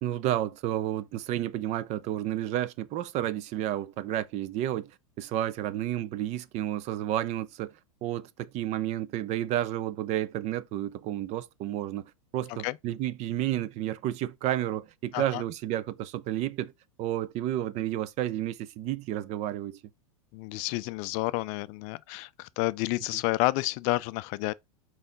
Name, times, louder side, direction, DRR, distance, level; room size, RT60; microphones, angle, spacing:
voice 1, 0.0-4.9 5.2-7.7 8.0-16.7 17.0-19.8, right 12 dB, 40° right, 0.6 m, -31 dB
voice 2, 20.3-24.5, left 21 dB, 45° left, 0.4 m, -30 dB
5.5 x 4.7 x 3.9 m
hypercardioid pair, 105°, 18 cm